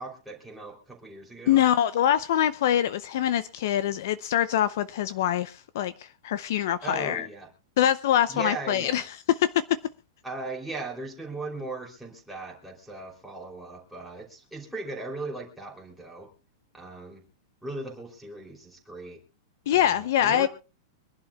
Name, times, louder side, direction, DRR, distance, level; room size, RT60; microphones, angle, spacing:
voice 1, 0.0-1.6 6.8-7.5 8.3-9.1 10.2-16.3 16.7-17.2 17.6-19.2 19.7-20.5, right 3 dB, ahead, 3.1 m, -38 dB
voice 2, 1.5-7.3 7.8-9.0 9.3-9.8 19.7-20.5, left 11 dB, 50° left, 0.6 m, -24 dB
25.0 x 11.5 x 2.3 m
supercardioid pair, 180°, 2 cm